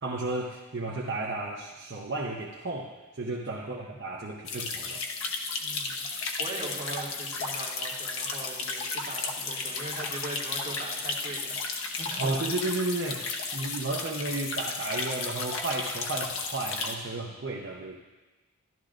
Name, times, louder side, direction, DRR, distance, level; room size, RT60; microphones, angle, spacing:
voice 1, 0.0-5.0 12.2-18.0, right 2 dB, 55° right, -3 dB, 0.8 m, -33 dB
voice 2, 3.6-3.9 5.6-6.1 6.4-12.4, right 2 dB, 40° right, -5 dB, 2.2 m, -40 dB
sound 1, 4.4-16.9, left 4 dB, 85° left, 1.0 m, -34 dB
13.5 x 12.0 x 2.5 m, 1.2 s
head